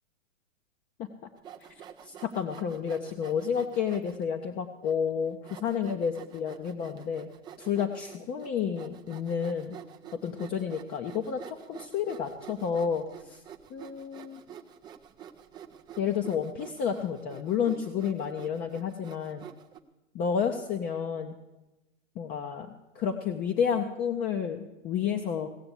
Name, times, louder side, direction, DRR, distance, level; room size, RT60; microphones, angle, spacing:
Sawing, 1.4-4.2 4.8-4.9 5.5-19.8, right 9 dB, 10° right, 0.5 m, -48 dB
voice 1, 2.0-7.3 7.6-9.8 10.2-11.4 11.7-13.4 13.7-14.4 16.0-19.4 20.1-21.3 22.2-22.7 22.9-25.5, left 7 dB, 25° left, 4 dB, 0.7 m, -30 dB
17.0 x 6.9 x 8.2 m, 1.0 s
hypercardioid pair, 125°, 38 cm